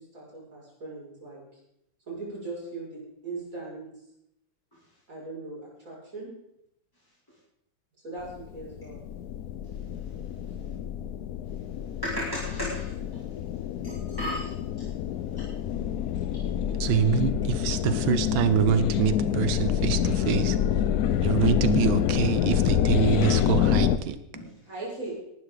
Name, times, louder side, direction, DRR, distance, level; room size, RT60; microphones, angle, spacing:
voice 1, 0.0-1.4 2.1-3.9 5.1-6.3 8.0-9.0 24.6-25.1, right 3 dB, 45° right, -5 dB, 6.4 m, -39 dB
sound 1, 8.3-24.0, left 10 dB, 70° left, 0.9 m, -27 dB
voice 2, 12.0-13.2 13.8-14.5 15.4-15.5 16.3-16.4 24.3-24.5, equal, 10° left, -5 dB, 2.4 m, -34 dB
voice 3, 16.8-20.6 21.2-24.2, right 8 dB, 90° right, 12 dB, 1.6 m, -25 dB
19.0 x 12.0 x 3.8 m, 0.79 s
omnidirectional pair, 2.1 m